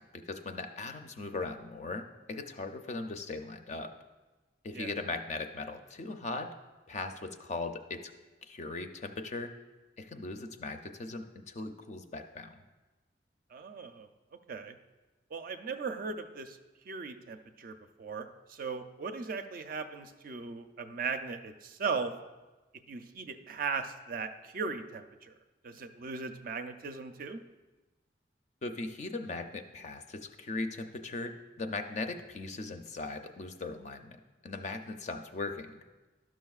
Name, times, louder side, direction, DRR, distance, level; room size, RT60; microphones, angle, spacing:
voice 1, 0.0-3.9 4.6-6.5 6.9-8.1 8.4-9.5 10.0-12.5 28.6-34.2 34.4-35.7, left 3 dB, 40° left, 7 dB, 0.4 m, -39 dB
voice 2, 13.5-14.1 14.5-14.7 15.3-16.6 16.9-22.1 22.9-25.3 25.6-27.4, right 5 dB, 50° right, 7 dB, 0.4 m, -38 dB
12.0 x 6.2 x 2.4 m, 1.2 s
head